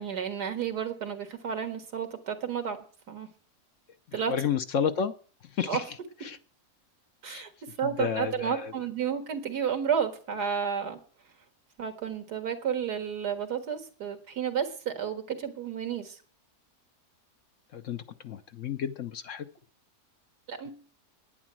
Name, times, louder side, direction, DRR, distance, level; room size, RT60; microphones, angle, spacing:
voice 1, 0.0-2.8 3.1-3.3 4.1-4.3 5.7-5.8 7.2-7.5 7.8-11.0 11.8-16.2 20.5-20.7, right 7 dB, 80° right, 6 dB, 2.3 m, -31 dB
voice 2, 4.3-5.1 5.6-5.8 6.2-6.4 7.3-7.4 7.8-8.7 17.7-19.5, left 7 dB, 60° left, 10 dB, 1.0 m, -31 dB
10.0 x 9.7 x 7.5 m, 0.43 s
omnidirectional pair, 1.7 m